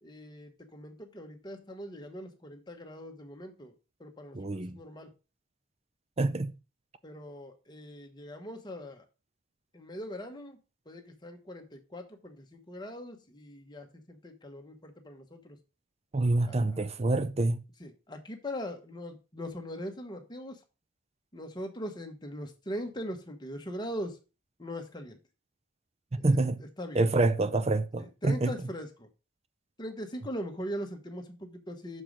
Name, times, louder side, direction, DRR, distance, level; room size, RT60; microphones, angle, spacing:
voice 1, 0.0-3.7 4.0-4.4 4.7-5.1 7.0-9.0 9.7-10.6 10.9-15.6 16.5-16.8 17.8-20.6 21.3-24.2 24.6-25.2 26.2-27.0 28.0-29.1 29.8-32.0, equal, 20° left, 1.0 m, -41 dB
voice 2, 4.3-4.8 6.2-6.5 16.1-17.6 26.1-26.6 26.9-28.5, right 2 dB, 30° right, 0.5 m, -27 dB
6.4 x 4.6 x 5.1 m
head